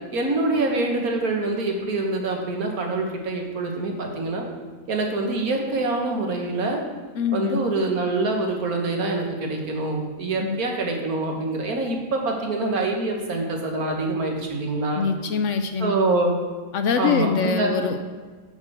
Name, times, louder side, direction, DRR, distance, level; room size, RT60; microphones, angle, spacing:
voice 1, 0.1-4.4 4.9-6.8 7.3-15.0 15.8-16.3 17.0-17.8, right 2 dB, 80° right, 1 dB, 1.8 m, -25 dB
voice 2, 7.2-7.6 10.4-10.6 15.0-15.9 16.7-18.0, left 6 dB, 65° left, 7 dB, 0.8 m, -24 dB
6.6 x 6.0 x 6.3 m, 1.5 s
omnidirectional pair, 1.5 m